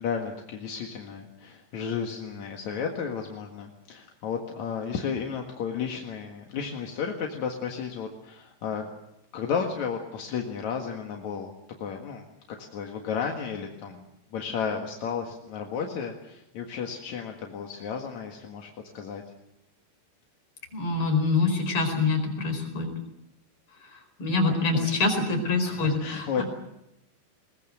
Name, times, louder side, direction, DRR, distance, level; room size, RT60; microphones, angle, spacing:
voice 1, 0.0-8.9 9.3-11.5 11.8-12.3 12.6-14.0 14.3-18.7 18.9-19.2 24.4-25.0 25.7-26.4, left 6 dB, 55° left, 2 dB, 2.4 m, -33 dB
voice 2, 20.7-22.9 24.2-26.4, left 3 dB, 30° left, 4 dB, 5.2 m, -25 dB
22.0 x 21.0 x 7.8 m, 0.87 s
omnidirectional pair, 5.3 m